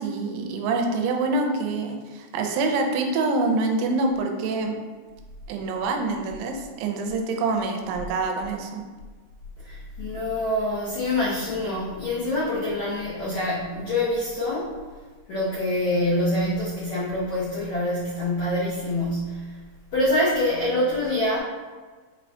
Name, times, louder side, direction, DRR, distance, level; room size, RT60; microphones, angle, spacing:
voice 1, 0.0-4.8 5.5-8.8, right 3 dB, 85° right, 3 dB, 2.6 m, -26 dB
voice 2, 9.6-14.7 15.3-19.5 19.9-21.4, left 1 dB, 85° left, -10 dB, 1.5 m, -25 dB
6.0 x 2.7 x 3.2 m, 1.4 s
omnidirectional pair, 4.7 m